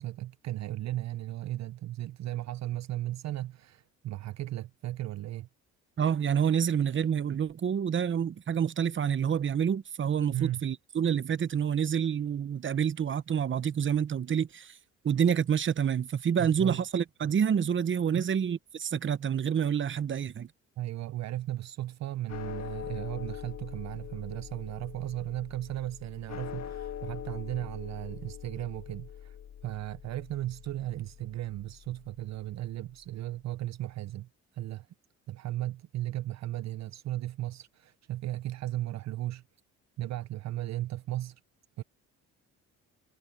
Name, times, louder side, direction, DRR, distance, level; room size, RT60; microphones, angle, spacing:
voice 1, 0.0-5.5 10.3-10.7 16.4-16.8 18.1-18.2 20.8-34.9 35.3-39.4 40.0-41.4 41.8-41.9, right 14 dB, 60° right, 0.6 m, -36 dB
voice 2, 6.0-14.8 15.0-20.5, right 8 dB, 40° right, 0.9 m, -28 dB
sound 1, 22.3-32.7, left 10 dB, 60° left, 1.6 m, -43 dB
cardioid pair, 90°, 30 cm